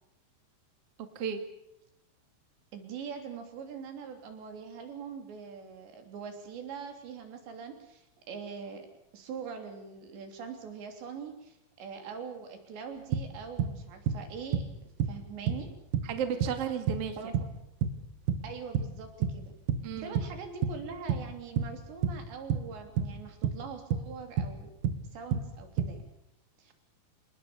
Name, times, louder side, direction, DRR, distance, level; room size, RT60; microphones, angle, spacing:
voice 1, 1.0-1.4 16.0-17.2 19.8-20.1, right 8 dB, 45° right, 7 dB, 2.4 m, -33 dB
voice 2, 2.7-8.9 9.1-14.6 15.0-15.7 17.2-17.4 18.4-19.6 19.9-24.7 25.1-26.0 26.6-26.7, right 6 dB, 75° right, 5 dB, 5.5 m, -43 dB
sound 1, 13.1-19.4 19.7-26.0, right 7 dB, 60° right, 2.8 m, -30 dB
27.0 x 19.5 x 6.9 m, 0.83 s
omnidirectional pair, 5.1 m